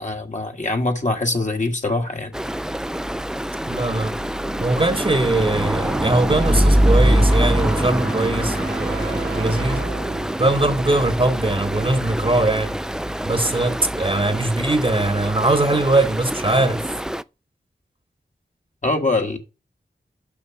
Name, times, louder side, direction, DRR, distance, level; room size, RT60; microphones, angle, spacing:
voice 1, 0.0-2.4 18.8-19.4, left 2 dB, 40° left, 1.5 m, -23 dB
Stream, 2.3-17.2, equal, 5° right, 0.3 m, -23 dB
voice 2, 3.7-4.1 4.6-9.9 10.4-12.7 13.2-16.9, right 2 dB, 30° right, 1.1 m, -21 dB
sound 1, 3.9-11.6, right 5 dB, 60° right, 0.8 m, -35 dB
7.1 x 5.8 x 5.7 m
wide cardioid pair, 60°, 18 cm